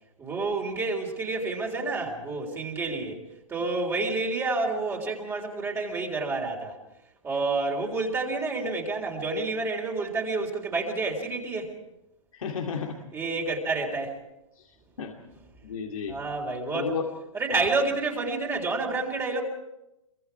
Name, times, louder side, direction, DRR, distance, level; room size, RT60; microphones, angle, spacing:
voice 1, 0.2-3.2 3.5-6.8 7.2-11.7 13.1-14.2 16.1-16.9 17.3-19.4, right 3 dB, 15° right, 1 dB, 3.8 m, -29 dB
voice 2, 12.3-13.0 14.6-14.7 15.0-15.2 15.6-16.2 16.7-17.1 17.5-17.7, left 6 dB, 80° left, 1 dB, 2.5 m, -32 dB
26.0 x 24.0 x 4.7 m, 0.91 s
hypercardioid pair, 135°, 17 cm